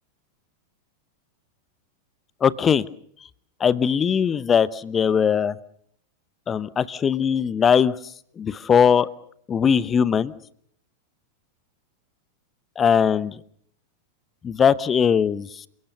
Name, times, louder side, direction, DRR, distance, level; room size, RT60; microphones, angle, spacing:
voice 1, 2.4-2.8 3.6-5.6 6.5-7.9 8.4-9.1 9.5-10.3 12.8-13.4 14.4-15.7, left 7 dB, 20° left, 19 dB, 0.9 m, -20 dB
28.5 x 17.5 x 6.8 m, 0.65 s
figure-of-eight pair, 90°, 0 cm